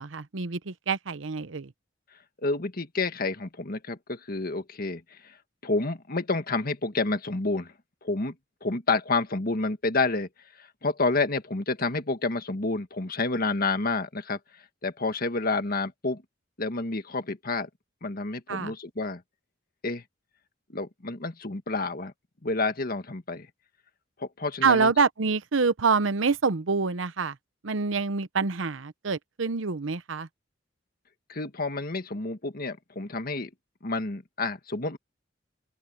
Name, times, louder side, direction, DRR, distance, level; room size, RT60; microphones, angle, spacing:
voice 1, 0.0-1.7 18.5-18.7 24.6-27.3 27.6-30.3, right 4 dB, 90° right, 0.8 m, -26 dB
voice 2, 2.4-5.3 5.6-7.7 8.0-8.3 8.6-10.3 10.6-14.4 14.8-16.2 16.6-17.7 18.0-19.2 19.8-20.0 20.7-22.1 22.4-23.5 24.2-24.9 31.3-33.5 33.8-35.0, left 3 dB, 50° left, 1.7 m, -29 dB
open air
head